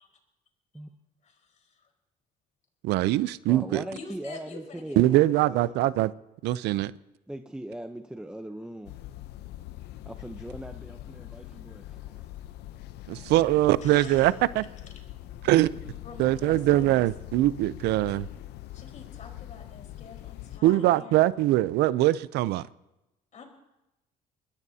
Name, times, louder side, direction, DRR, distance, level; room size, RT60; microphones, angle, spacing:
voice 1, 1.2-1.9 3.9-5.3 13.1-13.5 13.8-14.3 16.0-17.3 18.7-21.5 23.3-23.4, left 4 dB, 45° left, 2 dB, 4.5 m, -46 dB
voice 2, 2.8-3.8 5.0-6.1 6.4-6.9 13.1-14.6 15.4-15.7 16.2-18.3 20.6-22.6, right 15 dB, 85° right, 17 dB, 0.5 m, -22 dB
voice 3, 3.5-5.8 7.3-8.9 10.1-12.3, right 1 dB, 5° right, 6 dB, 0.8 m, -40 dB
sound 1, 8.8-20.6, left 14 dB, 80° left, 0.7 m, -43 dB
23.0 x 20.5 x 2.8 m, 0.95 s
cardioid pair, 110°, 17 cm